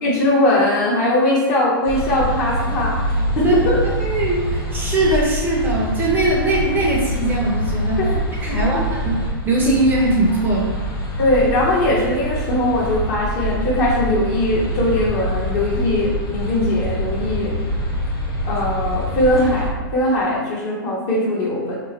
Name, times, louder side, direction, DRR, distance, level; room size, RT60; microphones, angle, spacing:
voice 1, 0.0-2.9 3.4-3.8 8.0-8.2 8.4-8.8 11.2-17.6 18.4-21.8, left 1 dB, 45° left, -4 dB, 1.1 m, -20 dB
sound 1, 1.8-19.7, equal, 85° left, 1.0 m, -25 dB
voice 2, 3.2-3.7 4.0-8.0 8.4-9.2 9.4-10.8, right 2 dB, 15° right, -3 dB, 0.5 m, -20 dB
2.9 x 2.2 x 3.9 m, 1.3 s
hypercardioid pair, 125°, 12 cm